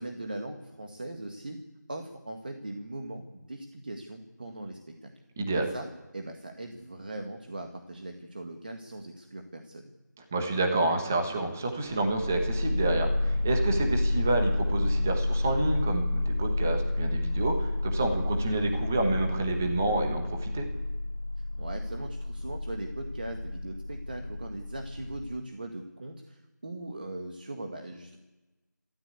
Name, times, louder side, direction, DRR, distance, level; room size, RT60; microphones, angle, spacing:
voice 1, 0.0-1.6 1.9-5.1 5.5-5.9 6.1-9.9 21.6-28.2, right 1 dB, 30° right, 4 dB, 1.8 m, -40 dB
voice 2, 5.4-5.7 10.3-20.6, right 2 dB, 5° right, 3 dB, 1.1 m, -29 dB
sound 1, 12.0-25.4, left 2 dB, 55° left, 2.9 m, -30 dB
27.0 x 13.5 x 8.4 m, 1.1 s
figure-of-eight pair, 180°, 10 cm